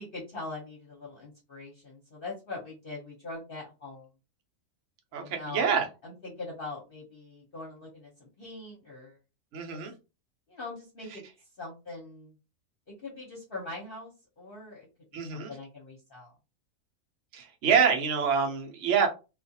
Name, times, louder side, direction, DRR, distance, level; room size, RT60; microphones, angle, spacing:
voice 1, 0.0-4.1 5.1-5.7 6.0-9.2 9.7-9.8 10.5-11.2 11.6-12.3 13.0-14.9 15.3-16.3, left 3 dB, 45° left, -4 dB, 0.9 m, -42 dB
voice 2, 5.1-5.8 9.5-9.9 15.1-15.5 17.3-19.1, right 6 dB, 60° right, 3 dB, 1.0 m, -26 dB
2.4 x 2.4 x 2.7 m, 0.29 s
omnidirectional pair, 1.6 m